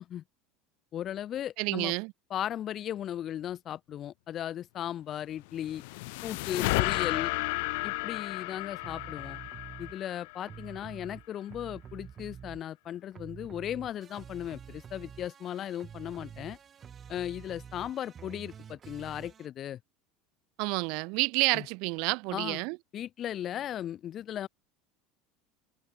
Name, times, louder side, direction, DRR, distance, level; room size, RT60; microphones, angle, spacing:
voice 1, 0.9-1.9 2.3-5.8 6.2-7.3 7.8-9.4 9.8-16.6 17.1-19.8 21.5-21.7 22.3-22.6 22.9-24.5, left 11 dB, 30° left, 3.3 m, -36 dB
voice 2, 1.6-2.1 20.6-22.8, right 30 dB, 55° right, 1.4 m, -29 dB
sound 1, 5.4-10.8, left 25 dB, 70° left, 6.9 m, -33 dB
sound 2, 8.8-10.0 10.4-12.9 13.1-19.5, right 8 dB, 20° right, 6.1 m, -48 dB
cardioid pair, 170°, 0 cm